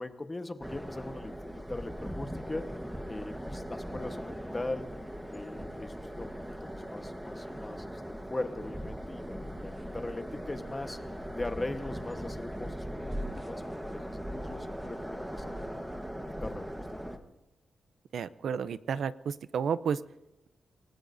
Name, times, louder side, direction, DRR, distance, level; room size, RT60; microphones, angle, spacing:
voice 1, 0.0-2.7 3.0-4.9 5.3-6.3 6.6-8.0 8.3-11.0 11.3-13.0 13.3-15.8 16.3-16.7, left 2 dB, 20° left, 7 dB, 1.2 m, -40 dB
sound 1, 0.6-17.2, equal, 5° right, 1.2 m, -39 dB
voice 2, 18.1-20.0, right 7 dB, 75° right, 15 dB, 0.5 m, -31 dB
28.0 x 19.0 x 2.7 m, 0.94 s
wide cardioid pair, 135°, 0 cm